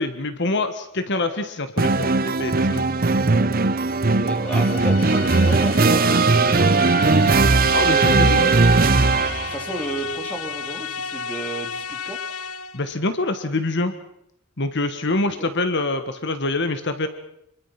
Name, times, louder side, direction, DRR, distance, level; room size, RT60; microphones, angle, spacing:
voice 1, 0.0-2.9 7.7-8.5 12.7-13.9 14.6-17.1, left 2 dB, 55° left, 9 dB, 1.5 m, -25 dB
sound 1, 1.8-9.6, right 3 dB, 40° right, 0.8 m, -18 dB
voice 2, 4.1-8.5 9.4-12.2, right 1 dB, 5° left, 3 dB, 3.4 m, -32 dB
sound 2, 4.4-12.9, left 6 dB, 70° left, 1.1 m, -33 dB
27.5 x 22.0 x 5.9 m, 0.78 s
head